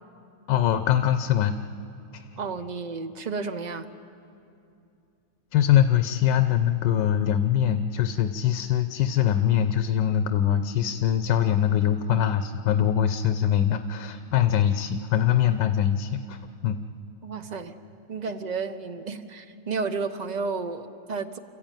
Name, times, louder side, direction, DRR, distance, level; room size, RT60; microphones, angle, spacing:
voice 1, 0.5-1.5 2.1-2.2 5.5-16.4 16.6-16.8, left 10 dB, 85° left, 9 dB, 1.4 m, -23 dB
voice 2, 2.4-3.9 17.2-17.8 18.1-21.4, right 4 dB, 50° right, 9 dB, 0.5 m, -32 dB
29.5 x 13.5 x 9.1 m, 2.6 s
omnidirectional pair, 1.8 m